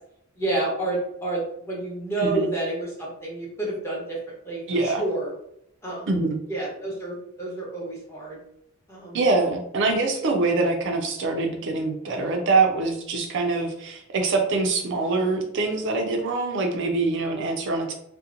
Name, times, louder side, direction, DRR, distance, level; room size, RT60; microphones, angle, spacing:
voice 1, 0.4-4.2 4.4-5.3 5.8-6.1 6.5-8.4 8.9-9.2, right 2 dB, 15° left, -5 dB, 0.9 m, -29 dB
voice 2, 4.7-5.0 6.1-6.4 9.1-17.9, right 3 dB, 65° right, 3 dB, 0.4 m, -24 dB
2.7 x 2.1 x 2.4 m, 0.74 s
head